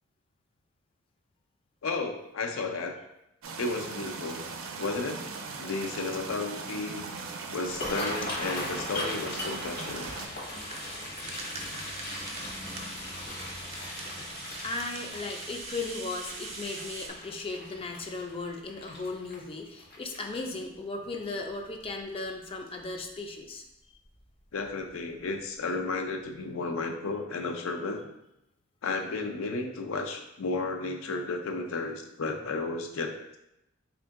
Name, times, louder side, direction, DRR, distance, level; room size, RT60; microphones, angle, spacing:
voice 1, 1.8-2.9 3.6-4.4 4.8-5.3 5.6-7.0 7.5-10.1 24.5-28.0 28.8-33.4, left 3 dB, 80° left, 4 dB, 0.5 m, -33 dB
sound 1, 3.4-10.3, right 4 dB, 85° right, 0.4 m, -39 dB
sound 2, 7.6-20.8 21.2-21.5 21.8-22.3 22.7-22.8 24.0-24.2 24.6-24.7 25.2-25.3, left 1 dB, 50° left, 1.0 m, -39 dB
Rattle (instrument), 9.4-17.1, right 3 dB, 30° right, 0.5 m, -43 dB
voice 2, 14.6-23.6, left 3 dB, 25° left, 3 dB, 0.4 m, -36 dB
3.6 x 2.5 x 3.5 m, 0.86 s
head